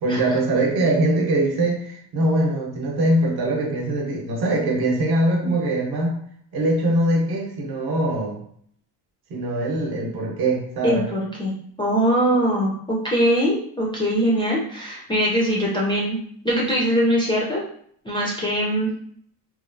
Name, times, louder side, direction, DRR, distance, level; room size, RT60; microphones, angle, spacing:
voice 1, 0.0-6.2 6.5-8.4 9.3-11.1, right 1 dB, 60° right, 0 dB, 0.9 m, -22 dB
voice 2, 10.8-11.5 11.8-16.2 16.4-17.6 18.1-18.9, equal, 10° left, -6 dB, 0.3 m, -22 dB
3.0 x 2.2 x 2.5 m, 0.62 s
cardioid pair, 140°, 44 cm